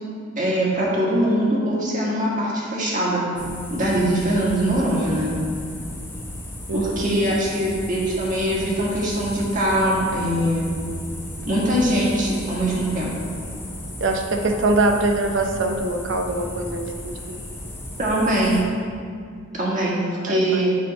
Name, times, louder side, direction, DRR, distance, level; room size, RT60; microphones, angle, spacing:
voice 1, 0.4-3.3 3.7-5.3 6.7-10.7 11.5-13.1 18.0-18.7 19.5-20.8, right 1 dB, 40° right, -5 dB, 1.6 m, -22 dB
sound 1, 3.4-18.6, left 1 dB, 10° left, 0.9 m, -35 dB
voice 2, 6.7-7.2 14.0-16.8 17.3-17.4 20.3-20.6, right 2 dB, 65° right, 4 dB, 0.7 m, -23 dB
8.5 x 3.6 x 5.2 m, 2.2 s
head